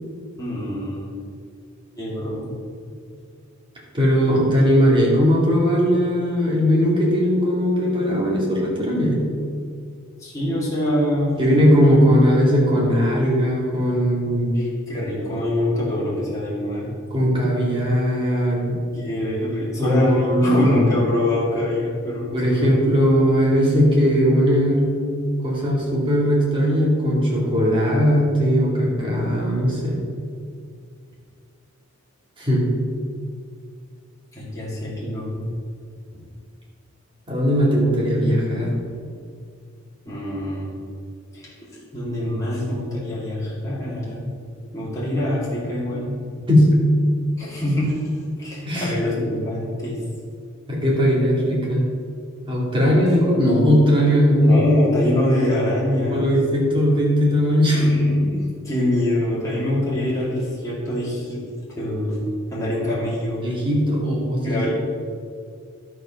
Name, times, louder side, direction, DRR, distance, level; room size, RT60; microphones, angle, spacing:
voice 1, 0.4-1.1 2.0-2.5 2.9-3.2 10.2-11.5 14.5-16.9 18.9-22.8 34.3-35.5 40.1-40.7 41.3-44.3 44.7-46.1 47.4-50.0 54.4-56.4 57.6-61.4 61.8-63.5 64.4-64.7, left 1 dB, 15° left, -8 dB, 2.3 m, -25 dB
voice 2, 3.9-9.2 11.4-14.6 17.1-18.8 19.8-20.9 22.3-24.9 25.4-30.0 32.4-32.7 37.3-38.7 46.5-47.0 48.6-48.9 50.7-51.8 52.5-54.8 56.1-57.8 63.4-64.7, equal, 25° right, -4 dB, 2.4 m, -18 dB
11.5 x 4.8 x 5.8 m, 2.2 s
head